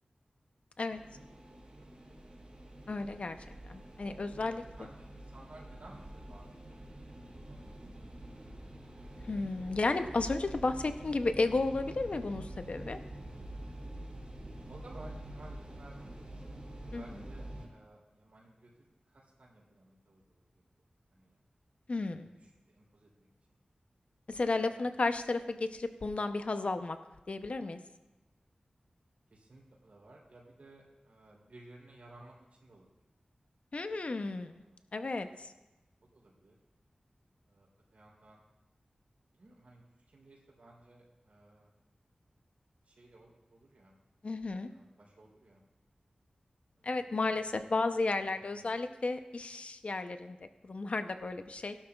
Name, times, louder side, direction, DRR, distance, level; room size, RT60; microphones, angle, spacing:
voice 1, 0.8-1.3 1.6-1.9 4.4-8.3 14.7-16.6 16.8-18.7 19.0-20.6 21.1-21.4 22.2-23.3 24.7-24.9 29.3-33.1 34.3-34.8 36.0-36.6 37.4-38.4 39.3-41.7 42.8-43.9 44.6-45.6 46.7-47.5 48.3-48.7, right 2 dB, 70° right, -3 dB, 3.4 m, -57 dB
sound 1, 0.9-17.7, right 1 dB, 45° right, 3.1 m, -46 dB
voice 2, 2.9-3.4 3.7-4.6 9.3-13.0 16.9-17.2 21.9-22.3 24.3-27.0 27.3-27.8 33.7-34.6 34.9-35.5 44.2-44.7 46.8-51.8, left 3 dB, 55° left, 8 dB, 0.7 m, -33 dB
16.5 x 12.0 x 2.4 m, 1.1 s
wide cardioid pair, 75°, 3 cm